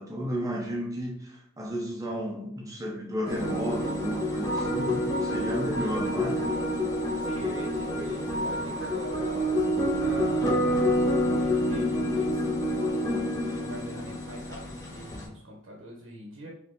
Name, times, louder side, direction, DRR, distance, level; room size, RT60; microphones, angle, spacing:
voice 1, 0.0-6.6, equal, 15° right, 0 dB, 0.6 m, -33 dB
sound 1, 3.3-15.3, equal, 20° left, 1.2 m, -28 dB
voice 2, 7.3-13.2 13.6-16.5, right 1 dB, 65° right, -1 dB, 0.8 m, -43 dB
4.3 x 2.7 x 3.7 m, 0.72 s
head